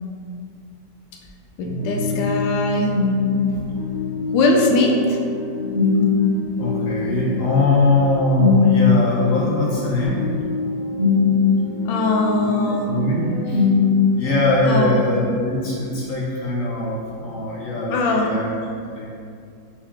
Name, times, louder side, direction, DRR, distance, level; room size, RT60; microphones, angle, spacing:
voice 1, 1.6-2.9 4.3-5.2 11.8-12.9 14.7-15.0 17.9-18.3, left 2 dB, 90° left, 1 dB, 1.3 m, -20 dB
sound 1, 1.6-14.5, left 5 dB, 35° right, 0.7 m, -22 dB
voice 2, 6.6-10.2 12.7-13.6 14.2-18.5 18.9-19.1, left 2 dB, 65° left, -4 dB, 0.8 m, -21 dB
4.6 x 2.9 x 3.4 m, 2.4 s
omnidirectional pair, 1.9 m